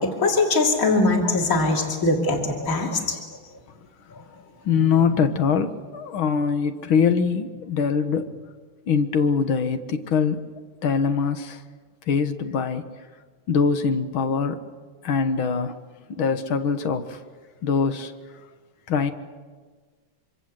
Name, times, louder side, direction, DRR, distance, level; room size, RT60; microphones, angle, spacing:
voice 1, 0.0-3.2, left 2 dB, 40° left, 1 dB, 3.3 m, -21 dB
voice 2, 4.7-8.3 8.9-10.4 10.8-11.6 12.1-12.8 13.5-14.6 15.0-15.8 16.2-17.2 17.6-18.1 18.9-19.1, left 6 dB, 85° left, 9 dB, 2.1 m, -23 dB
25.5 x 25.5 x 7.6 m, 1.5 s
omnidirectional pair, 2.2 m